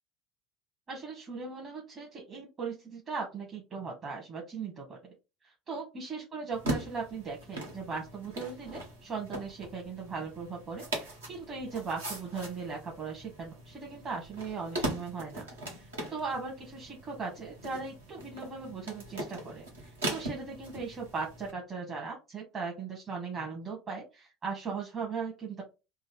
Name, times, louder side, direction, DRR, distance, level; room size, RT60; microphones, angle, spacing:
voice 1, 0.9-5.1 5.4-15.5 15.8-25.6, right 4 dB, 35° right, -1 dB, 1.1 m, -38 dB
sound 1, 6.5-21.5, right 1 dB, 85° right, 1.0 m, -40 dB
3.4 x 2.0 x 3.5 m, 0.27 s
hypercardioid pair, 70°, 0 cm